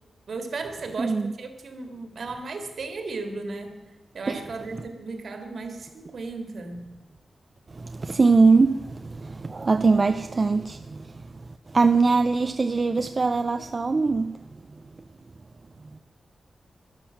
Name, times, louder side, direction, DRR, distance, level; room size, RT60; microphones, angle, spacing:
voice 1, 0.3-6.9, right 3 dB, 60° right, 2.2 m, -35 dB
voice 2, 1.0-1.3 4.3-4.4 7.7-14.8 15.9-16.0, right 4 dB, 35° right, 0.5 m, -22 dB
12.5 x 12.0 x 7.2 m
wide cardioid pair, 145°, 0 cm